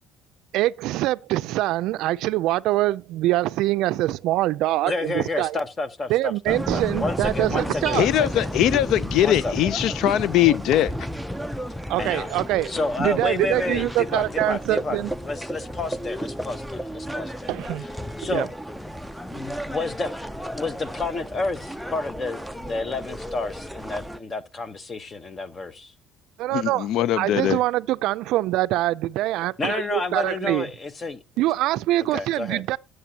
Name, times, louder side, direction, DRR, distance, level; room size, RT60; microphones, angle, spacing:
voice 1, 0.5-5.6 6.1-8.1 11.9-12.7 13.0-15.1 17.5-17.9 18.3-18.5 26.4-26.9 27.2-30.7 31.4-32.8, right 16 dB, 75° right, 0.4 m, -24 dB
voice 2, 4.8-8.5 9.2-9.5 12.0-12.3 12.7-17.5 18.2-18.5 19.3-20.1 20.5-25.9 29.6-31.2 32.0-32.6, left 3 dB, 25° left, 1.0 m, -30 dB
sound 1, 6.5-24.2, equal, ahead, 0.5 m, -33 dB
voice 3, 7.9-10.9 26.5-27.6, left 12 dB, 65° left, 0.4 m, -21 dB
12.0 x 7.8 x 2.8 m
cardioid pair, 125°, 0 cm